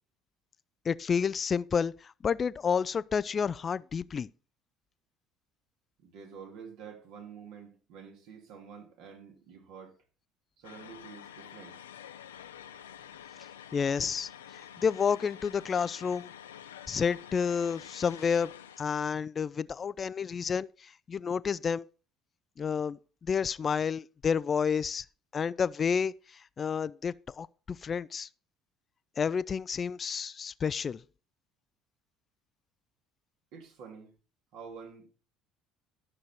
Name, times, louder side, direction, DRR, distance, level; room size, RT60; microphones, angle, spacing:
voice 1, 0.9-1.9 2.2-4.3 13.7-14.3 14.8-16.3 16.9-18.5 18.8-20.7 21.1-21.8 22.6-23.0 23.2-25.0 25.3-26.1 26.6-28.3 29.2-31.0, left 6 dB, 35° left, 0.4 m, -30 dB
voice 2, 6.0-10.0 10.6-11.8 33.5-34.1 34.5-35.1, right 6 dB, 65° right, 2.6 m, -48 dB
sound 1, 10.6-18.9, left 9 dB, 80° left, 0.6 m, -48 dB
13.0 x 6.3 x 4.3 m
hypercardioid pair, 60°, 0 cm